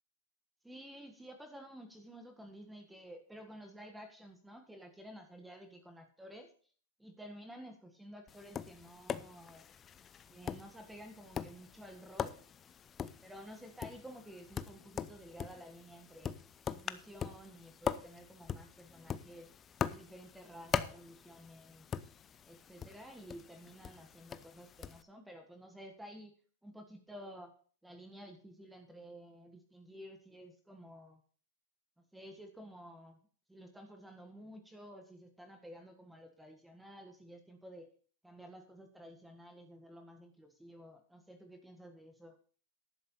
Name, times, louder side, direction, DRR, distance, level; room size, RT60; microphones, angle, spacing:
voice 1, 0.6-6.5 7.0-9.7 10.3-12.4 13.2-16.4 16.7-19.5 19.9-21.9 22.4-26.4 26.6-27.6 27.8-31.2 32.1-37.9 38.2-42.4, equal, 5° right, 6 dB, 1.6 m, -52 dB
Tap, 8.3-25.0, left 7 dB, 20° left, 0.6 m, -42 dB
11.0 x 7.5 x 5.6 m, 0.43 s
supercardioid pair, 145°, 0 cm